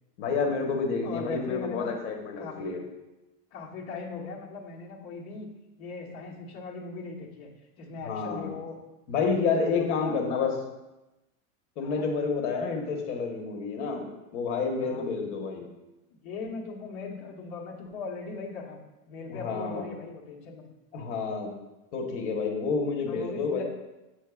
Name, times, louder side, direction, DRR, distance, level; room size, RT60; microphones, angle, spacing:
voice 1, 0.2-2.8 8.0-8.5 9.1-10.5 11.8-14.0 14.3-15.6 19.3-19.8 20.9-21.5 21.9-23.6, left 4 dB, 60° left, 2 dB, 1.2 m, -29 dB
voice 2, 1.0-1.9 2.4-2.8 3.5-5.5 5.8-7.5 7.8-8.8 9.2-10.5 11.8-12.1 14.8-15.0 16.1-18.8 19.1-20.6 23.1-23.6, left 4 dB, 40° left, -3 dB, 1.2 m, -39 dB
8.7 x 6.4 x 2.4 m, 1.0 s
supercardioid pair, 165°, 40 cm